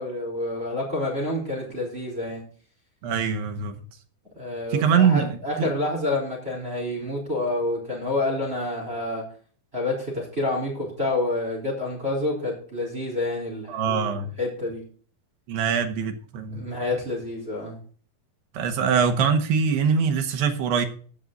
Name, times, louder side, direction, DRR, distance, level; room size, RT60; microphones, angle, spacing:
voice 1, 0.0-2.4 4.4-9.2 9.7-14.8 16.5-17.8, left 2 dB, 15° right, -2 dB, 4.2 m, -28 dB
voice 2, 3.0-3.8 4.7-5.7 13.7-14.3 15.5-16.7 18.5-20.9, right 6 dB, 80° right, 6 dB, 3.5 m, -23 dB
16.0 x 6.3 x 4.0 m, 0.43 s
omnidirectional pair, 4.7 m